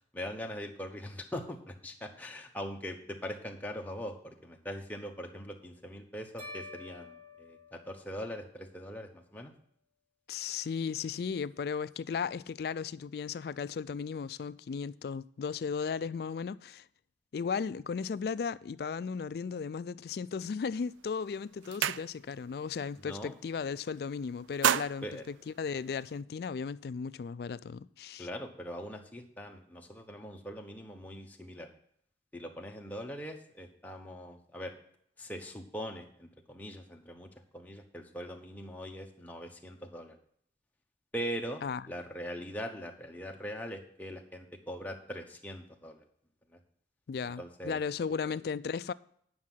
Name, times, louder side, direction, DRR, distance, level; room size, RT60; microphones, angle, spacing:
voice 1, 0.1-9.5 23.0-23.4 25.0-25.2 28.2-31.7 32.3-34.7 35.2-40.2 41.1-46.0 46.5-46.6 47.4-47.8 48.2-48.4, equal, 10° left, 0.9 m, -41 dB
sound 1, 6.4-8.7, left 2 dB, 40° right, 2.7 m, -49 dB
voice 2, 10.3-16.9 17.3-28.3 41.6-41.8 47.1-48.9, left 6 dB, 55° left, 0.3 m, -36 dB
sound 2, 20.8-21.0 21.4-22.5 22.9-23.1 23.4-24.0 24.3-26.2, right 9 dB, 85° right, 0.3 m, -33 dB
9.7 x 6.1 x 5.6 m
head